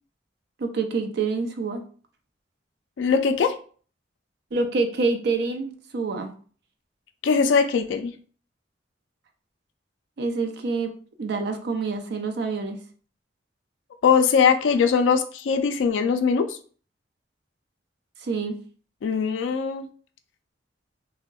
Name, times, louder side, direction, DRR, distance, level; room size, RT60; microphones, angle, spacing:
voice 1, 0.6-1.8 4.5-6.3 10.2-10.9 11.2-12.8 18.2-18.5, right 4 dB, 60° right, 6 dB, 0.4 m, -26 dB
voice 2, 3.0-3.5 7.2-8.1 14.0-16.6 19.0-19.9, left 6 dB, 80° left, 8 dB, 0.3 m, -21 dB
3.4 x 2.1 x 2.2 m, 0.43 s
head